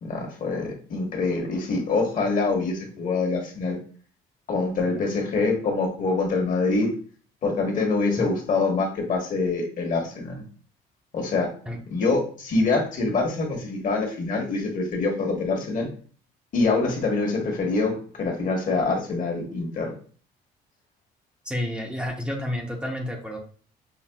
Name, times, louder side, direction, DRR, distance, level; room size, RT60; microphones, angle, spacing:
voice 1, 0.0-3.8 4.5-6.9 7.4-10.4 11.1-11.5 11.9-15.9 16.5-20.0, left 3 dB, 50° left, 1 dB, 1.2 m, -25 dB
voice 2, 21.4-23.4, left 1 dB, 5° right, 0 dB, 0.7 m, -30 dB
5.7 x 2.2 x 2.3 m, 0.43 s
cardioid pair, 110°, 17 cm